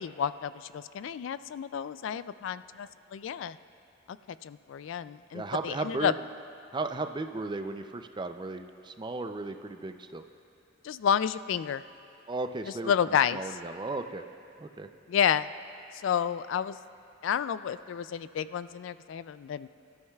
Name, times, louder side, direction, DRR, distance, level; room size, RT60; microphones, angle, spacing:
voice 1, 0.0-3.6 4.1-4.2 4.4-6.1 10.8-11.8 12.9-13.4 15.1-15.5 15.9-16.8 17.2-19.7, left 8 dB, 70° left, 14 dB, 0.3 m, -30 dB
voice 2, 5.3-6.1 6.7-10.2 12.3-12.9 13.3-14.2 14.6-14.9, right 3 dB, 25° right, 7 dB, 0.4 m, -35 dB
24.0 x 13.0 x 2.3 m, 2.5 s
head